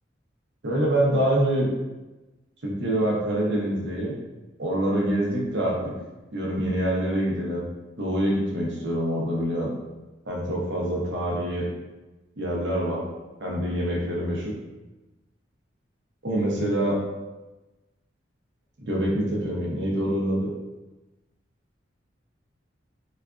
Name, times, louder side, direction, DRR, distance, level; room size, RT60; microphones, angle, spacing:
voice 1, 0.6-1.7 2.6-4.2 4.6-6.0 6.3-7.6 8.0-9.7 10.3-11.7 12.4-13.0 13.4-14.5 16.2-17.0 18.8-20.5, right 1 dB, 65° right, -3 dB, 0.8 m, -25 dB
4.0 x 2.4 x 2.3 m, 1.1 s
head